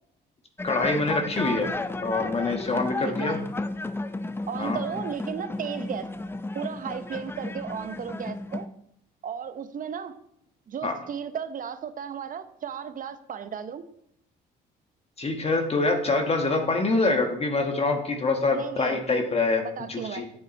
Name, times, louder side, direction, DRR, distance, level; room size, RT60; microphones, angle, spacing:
voice 1, 0.6-1.7 2.0-3.4 4.6-4.8 10.8-10.9 15.2-19.6 19.9-20.2, left 3 dB, 35° left, 4 dB, 1.5 m, -25 dB
sound 1, 0.6-8.7, left 2 dB, 10° left, 0.7 m, -33 dB
voice 2, 3.0-3.3 4.5-6.1 6.5-8.7 9.2-10.2 10.7-13.8 18.5-19.0 19.6-20.2, right 7 dB, 45° right, 12 dB, 0.8 m, -34 dB
8.3 x 7.3 x 4.2 m, 0.75 s
supercardioid pair, 75°, 19 cm